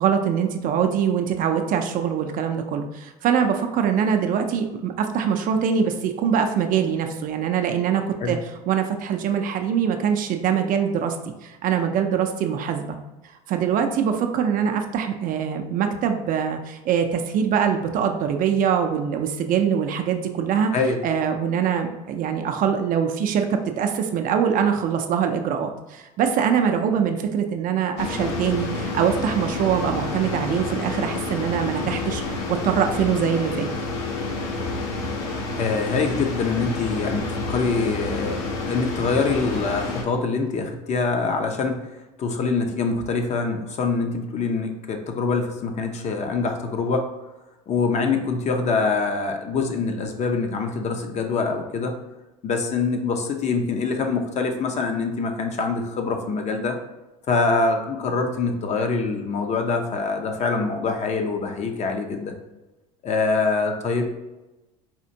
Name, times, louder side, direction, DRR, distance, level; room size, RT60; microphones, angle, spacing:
voice 1, 0.0-8.4 8.7-11.2 11.4-13.0 13.5-20.7 21.0-32.2 32.5-33.7, right 7 dB, 45° right, 5 dB, 0.4 m, -23 dB
sound 1, 28.0-40.0, left 3 dB, 70° left, 0.7 m, -29 dB
voice 2, 35.6-41.8 42.2-47.0 47.7-51.9 52.4-56.8 57.3-62.3 63.0-64.0, left 4 dB, 35° left, 4 dB, 0.6 m, -24 dB
4.3 x 2.4 x 2.7 m, 1.0 s
hypercardioid pair, 80°, 20 cm